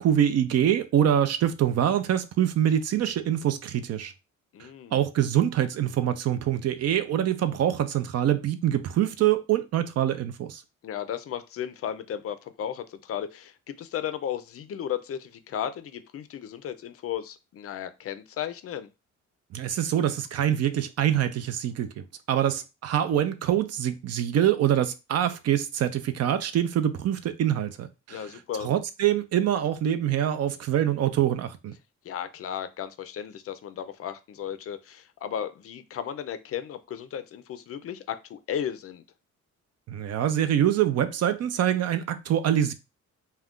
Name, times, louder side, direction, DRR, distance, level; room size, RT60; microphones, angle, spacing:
voice 1, 0.0-4.1 4.6-10.6 19.5-28.2 28.6-31.7 39.9-42.7, right 10 dB, 55° right, 0.5 m, -25 dB
voice 2, 4.5-5.0 10.8-18.9 28.1-28.7 32.0-39.0, left 9 dB, 50° left, 0.4 m, -35 dB
2.4 x 2.2 x 3.6 m
cardioid pair, 90°, 30 cm